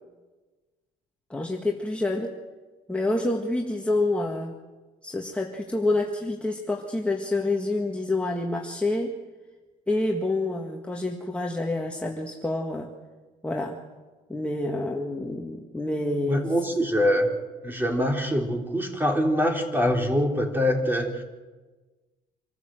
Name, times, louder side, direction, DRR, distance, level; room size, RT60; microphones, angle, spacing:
voice 1, 1.3-2.3 2.9-4.6 5.0-9.2 9.9-12.9 13.4-13.8 14.3-16.5, left 2 dB, 5° left, 1 dB, 1.7 m, -27 dB
voice 2, 16.3-17.3 17.6-21.2, equal, 10° right, 3 dB, 3.5 m, -24 dB
26.0 x 14.5 x 7.8 m, 1.3 s
cardioid pair, 110°, 17 cm